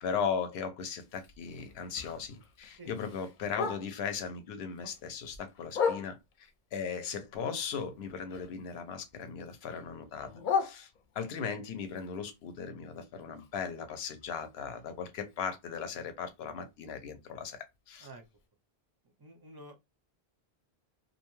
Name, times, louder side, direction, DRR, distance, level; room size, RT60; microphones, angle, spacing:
voice 1, 0.0-10.3 10.6-10.9 11.1-18.1, left 6 dB, 85° left, 0.9 m, -37 dB
Bark, 1.0-4.2 4.6-6.5 7.0-8.8 9.1-11.4 11.8-15.8 16.1-16.2 16.5-16.9 17.3-17.4 17.7-17.8 18.4-18.5, left 6 dB, 60° left, 0.6 m, -38 dB
voice 2, 19.2-19.8, right 1 dB, 35° right, 0.4 m, -49 dB
2.6 x 2.2 x 2.9 m
omnidirectional pair, 1.0 m